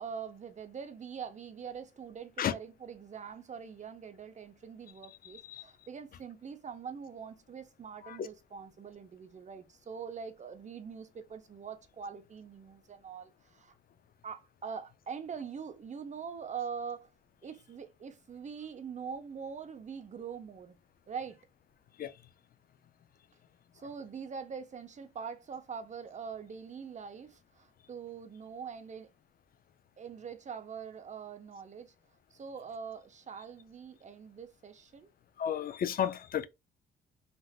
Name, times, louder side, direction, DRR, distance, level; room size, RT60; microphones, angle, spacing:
voice 1, 0.0-13.7 14.2-17.1 17.4-20.7 21.1-21.4 23.7-29.1 30.0-31.9 32.3-35.1, right 6 dB, 35° right, 0.7 m, -43 dB
voice 2, 5.2-5.6 8.0-8.3 22.0-22.1 35.4-36.5, left 9 dB, 45° left, 0.4 m, -33 dB
3.5 x 2.5 x 2.3 m
cardioid pair, 90°, 20 cm